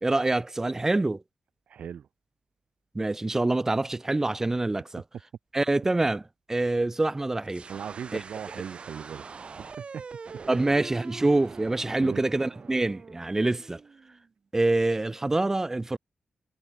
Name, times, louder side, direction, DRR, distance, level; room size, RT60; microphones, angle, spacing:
voice 1, 0.0-1.2 2.9-5.0 5.5-6.2 6.5-7.6 10.5-13.8 14.5-16.0, right 2 dB, 20° right, 0.4 m, -25 dB
voice 2, 1.7-2.1 7.7-10.1 11.9-12.2, right 8 dB, 80° right, 0.9 m, -39 dB
sound 1, 7.4-14.3, right 5 dB, 50° right, 2.3 m, -44 dB
wide cardioid pair, 100°, 2 cm